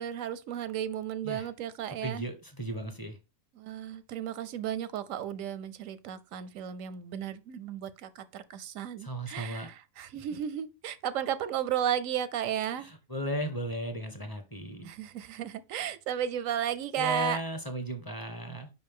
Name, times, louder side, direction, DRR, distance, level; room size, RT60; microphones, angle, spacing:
voice 1, 0.0-2.2 3.5-12.9 14.8-17.4, right 9 dB, 85° right, 1.0 m, -34 dB
voice 2, 2.0-3.2 9.0-9.7 12.8-14.9 17.0-18.7, right 1 dB, 20° left, 0.9 m, -36 dB
5.3 x 5.2 x 3.6 m
omnidirectional pair, 1.3 m